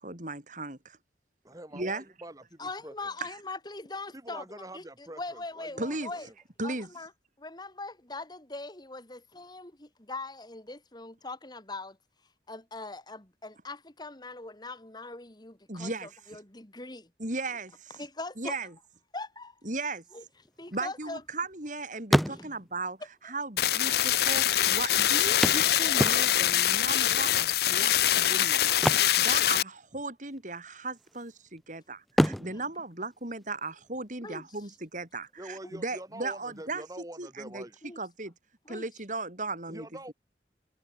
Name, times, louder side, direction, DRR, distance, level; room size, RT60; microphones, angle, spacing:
voice 1, 0.0-1.0 1.7-2.0 5.8-6.1 6.6-6.9 15.7-16.1 17.2-18.0 18.4-18.7 19.6-20.0 20.7-23.0 23.2-36.8 37.2-37.6 38.0-38.3 38.7-39.9, right 3 dB, 45° right, 4.9 m, -36 dB
voice 2, 1.4-2.9 4.1-6.3 35.4-37.8 39.7-40.1, right 1 dB, 20° right, 2.4 m, -45 dB
voice 3, 2.6-6.3 6.6-7.1 7.4-12.0 12.5-17.1 18.0-18.6 19.1-19.6 20.1-20.2 20.6-21.2 32.5-32.6 34.2-34.5 35.6-35.8 37.8-38.0 38.7-38.9, left 3 dB, 25° left, 2.4 m, -41 dB
sound 1, 20.4-21.7 22.0-22.8 23.8-23.9 24.1-24.2 25.4-26.6 28.7-30.0 30.2-30.5 31.0-31.6 32.1-33.8 35.8-35.9 36.4-36.5, equal, ahead, 1.5 m, -29 dB
sound 2, 23.6-29.6, left 12 dB, 60° left, 0.6 m, -24 dB
head